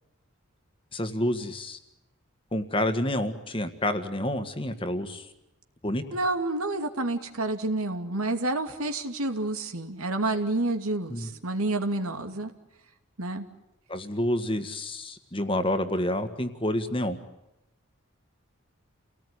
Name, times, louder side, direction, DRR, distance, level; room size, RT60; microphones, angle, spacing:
voice 1, 0.9-1.8 2.5-5.3 5.8-6.0 11.1-11.3 13.9-17.2, left 1 dB, 25° left, 8 dB, 1.7 m, -28 dB
voice 2, 6.1-12.5 13.2-13.5, right 2 dB, 85° right, 6 dB, 2.6 m, -29 dB
29.5 x 18.5 x 9.9 m, 0.91 s
head